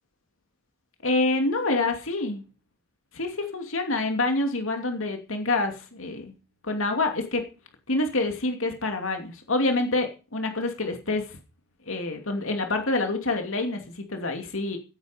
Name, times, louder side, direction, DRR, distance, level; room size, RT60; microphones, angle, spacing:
voice 1, 1.0-2.4 3.1-6.3 6.6-7.4 7.9-11.4 11.9-14.8, left 2 dB, 75° left, 4 dB, 2.7 m, -27 dB
15.5 x 9.5 x 5.3 m, 0.33 s
head